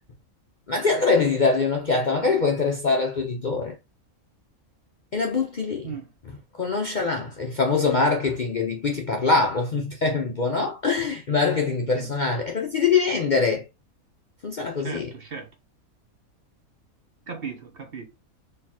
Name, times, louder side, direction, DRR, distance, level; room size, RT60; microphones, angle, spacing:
voice 1, 0.7-3.7 5.1-5.9 6.6-13.6 14.4-15.1, left 4 dB, 50° left, 0.6 m, -23 dB
voice 2, 14.8-15.5 17.3-18.1, right 5 dB, 50° right, 0.9 m, -36 dB
4.4 x 3.3 x 2.8 m
omnidirectional pair, 1.5 m